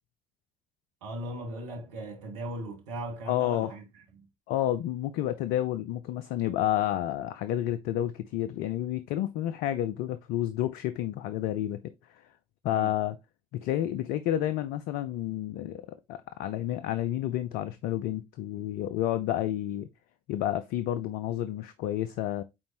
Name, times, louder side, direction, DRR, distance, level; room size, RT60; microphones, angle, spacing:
voice 1, 1.0-3.8 4.1-4.3 12.6-12.9, right 1 dB, 80° right, 1.8 m, -38 dB
voice 2, 3.3-3.7 4.5-12.2 12.6-13.2 13.5-19.9 20.3-22.4, left 12 dB, 65° left, 0.5 m, -30 dB
8.6 x 4.1 x 3.0 m
figure-of-eight pair, 50°, 17 cm